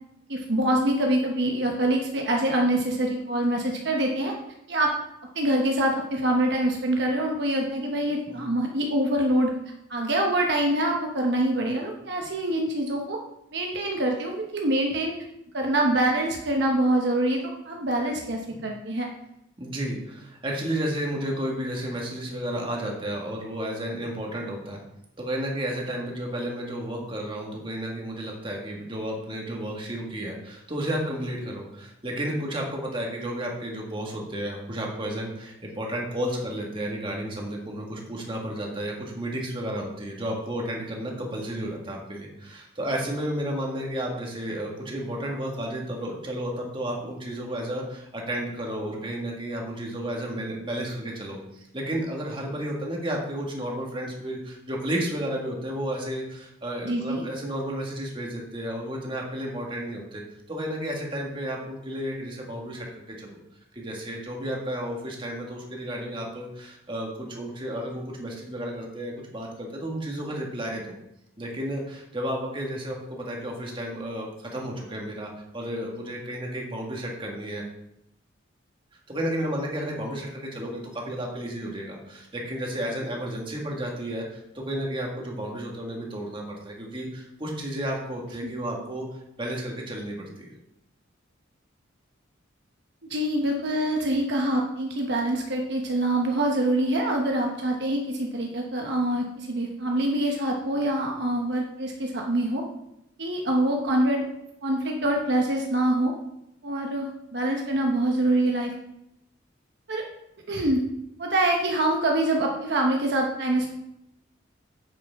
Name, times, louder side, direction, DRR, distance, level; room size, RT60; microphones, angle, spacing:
voice 1, 0.3-4.3 4.7-4.9 5.3-9.5 9.9-13.2 13.5-15.1 15.5-19.1 56.8-57.2 88.4-88.5 93.1-102.6 103.2-104.2 104.6-106.1 106.6-108.7 109.9-110.0 110.5-110.8 111.2-113.7, right 1 dB, 60° right, 1 dB, 1.0 m, -25 dB
voice 2, 19.6-24.8 25.2-60.2 60.5-63.4 63.7-71.0 71.4-77.6 79.1-89.1 89.4-90.5, right 1 dB, 25° right, -1 dB, 1.8 m, -32 dB
9.4 x 8.4 x 3.6 m, 0.83 s
head